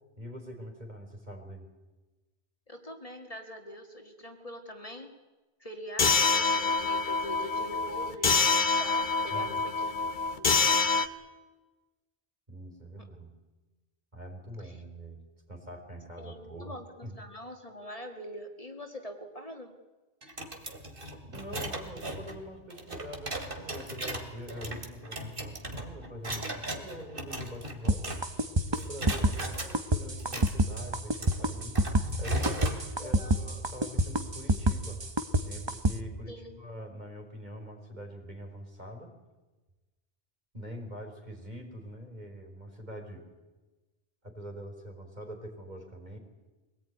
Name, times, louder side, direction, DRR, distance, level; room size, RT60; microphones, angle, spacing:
voice 1, 0.2-1.7 9.3-9.6 12.5-13.3 14.1-16.7 17.0-17.2 21.3-28.2 28.7-35.0 35.4-39.1 40.5-43.3 44.2-46.2, equal, 45° right, 4 dB, 4.4 m, -44 dB
voice 2, 2.7-5.1 5.6-10.6 14.6-14.8 16.2-19.7 33.0-33.5 36.3-36.6, equal, 35° left, 4 dB, 2.2 m, -44 dB
sound 1, 6.0-11.1, left 4 dB, 50° left, 1.3 m, -26 dB
sound 2, 20.2-28.5 28.7-29.7 30.2-32.8, right 1 dB, 60° right, 2.7 m, -37 dB
sound 3, 27.9-35.9, right 1 dB, 25° right, 1.0 m, -27 dB
24.5 x 18.5 x 9.5 m, 1.2 s
omnidirectional pair, 1.0 m